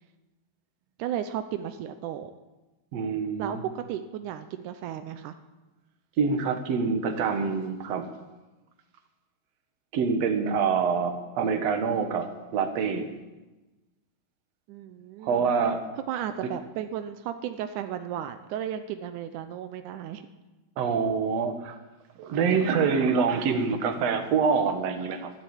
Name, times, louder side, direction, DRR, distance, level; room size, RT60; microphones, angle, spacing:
voice 1, 1.0-2.3 3.4-5.4 14.7-15.5 16.1-20.3, right 10 dB, 85° right, 9 dB, 1.7 m, -34 dB
voice 2, 2.9-3.6 6.2-8.1 9.9-13.1 15.2-15.8 20.8-21.8 22.2-25.3, right 5 dB, 55° right, 6 dB, 2.0 m, -26 dB
13.0 x 12.5 x 8.7 m, 1.1 s
omnidirectional pair, 4.4 m